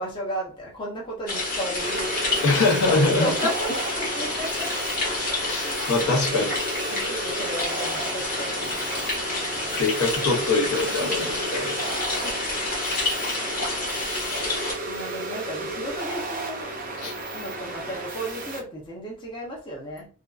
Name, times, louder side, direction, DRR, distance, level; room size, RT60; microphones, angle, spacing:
voice 1, 0.0-4.8 6.9-9.7 10.8-11.2 11.9-12.4 14.9-16.7 17.0-20.1, equal, 20° left, 0.6 m, -35 dB
sound 1, 1.3-14.7, left 2 dB, 40° left, 1.0 m, -29 dB
sound 2, 1.8-18.6, right 2 dB, 35° right, 0.4 m, -33 dB
voice 2, 2.4-3.3 5.4-6.5 6.9-7.1 9.8-11.8 17.0-17.1, left 3 dB, 70° left, 0.7 m, -23 dB
2.5 x 2.3 x 2.3 m
head